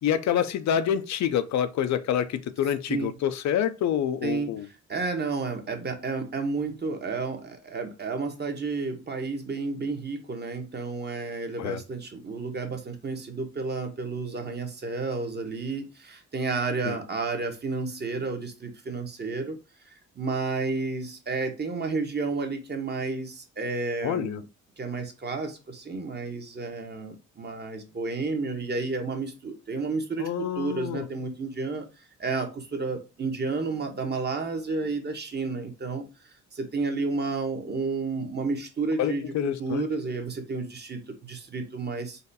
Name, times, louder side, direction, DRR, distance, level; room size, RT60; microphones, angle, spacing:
voice 1, 0.0-4.7 11.6-11.8 16.8-17.0 24.0-24.4 30.2-31.1 39.0-39.9, left 9 dB, 65° left, 0.6 m, -27 dB
voice 2, 4.2-4.6 4.9-19.6 20.2-24.4 24.8-30.3 30.5-31.9 32.2-36.0 36.5-39.3 39.6-42.2, right 3 dB, 35° right, 1.2 m, -31 dB
4.1 x 2.5 x 4.0 m
cardioid pair, 90°, 30 cm